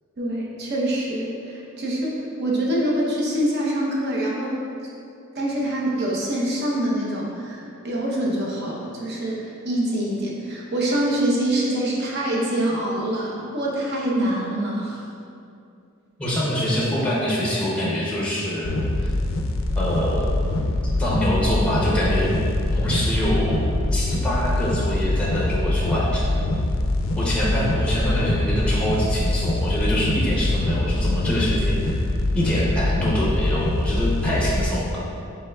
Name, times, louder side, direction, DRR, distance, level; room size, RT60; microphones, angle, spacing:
voice 1, 0.2-4.6 5.3-15.0, right 1 dB, 55° right, -4 dB, 0.8 m, -25 dB
voice 2, 16.2-18.7 19.0-19.1 19.8-20.3 21.0-22.3 22.7-23.6 23.9-26.5 27.2-32.0 32.3-35.0, equal, 5° left, -6 dB, 0.6 m, -25 dB
sound 1, 18.6-34.6, left 1 dB, 70° left, 0.4 m, -23 dB
5.4 x 3.6 x 2.3 m, 2.5 s
head